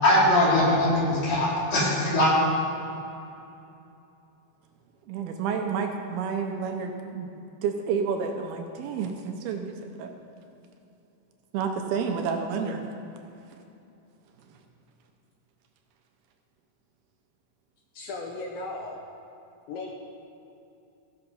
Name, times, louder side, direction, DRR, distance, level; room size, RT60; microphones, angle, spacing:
voice 1, 0.0-2.3, left 1 dB, 60° left, -6 dB, 4.2 m, -21 dB
voice 2, 5.1-7.3 7.6-10.1 11.5-12.8, right 6 dB, 80° right, 3 dB, 2.5 m, -30 dB
voice 3, 17.9-19.0 19.7-19.9, left 3 dB, 75° left, 0 dB, 2.3 m, -36 dB
15.5 x 6.9 x 5.4 m, 2.8 s
omnidirectional pair, 4.7 m